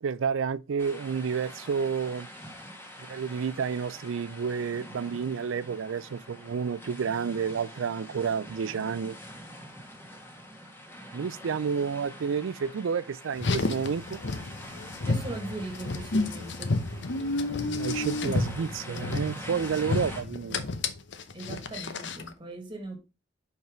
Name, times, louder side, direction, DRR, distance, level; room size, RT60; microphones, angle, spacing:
voice 1, 0.0-2.3 3.0-9.2 11.1-14.2 17.6-20.6, right 6 dB, 90° right, 0.4 m, -30 dB
sound 1, 0.8-20.2, equal, 10° left, 1.4 m, -45 dB
Car, 13.3-22.3, left 3 dB, 65° left, 0.8 m, -31 dB
voice 2, 15.0-16.8 21.3-23.0, right 2 dB, 25° right, 1.7 m, -39 dB
5.4 x 4.6 x 5.0 m
head